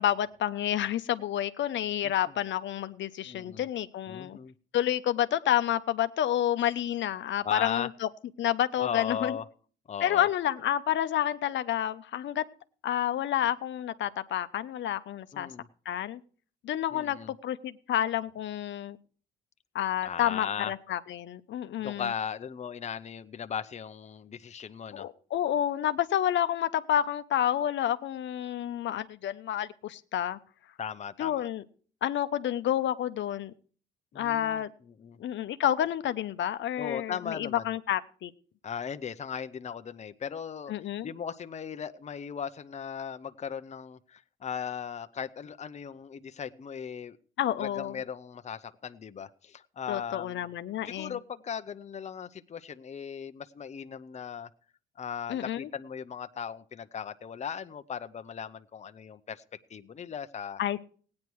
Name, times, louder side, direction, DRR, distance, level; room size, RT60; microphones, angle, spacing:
voice 1, 0.0-4.4 4.7-8.1 8.4-9.4 10.0-12.4 12.8-15.5 15.9-16.2 16.6-19.0 19.7-22.1 24.9-30.4 31.2-31.6 32.0-33.5 34.1-34.7 35.2-38.3 40.7-41.1 47.4-48.0 49.9-51.2 55.3-55.7 60.6-60.9, left 11 dB, 70° left, 11 dB, 0.8 m, -29 dB
voice 2, 3.3-3.7 4.1-4.5 7.4-7.9 8.8-9.5 9.9-10.3 15.3-15.7 16.9-17.3 20.0-20.7 21.8-25.1 30.8-31.5 34.1-35.2 36.8-37.7 38.6-40.7 41.0-47.2 47.6-50.5 50.8-54.5 55.0-59.4 59.7-60.6, left 7 dB, 35° left, 10 dB, 0.7 m, -38 dB
16.5 x 9.6 x 4.6 m, 0.43 s
cardioid pair, 90°, 20 cm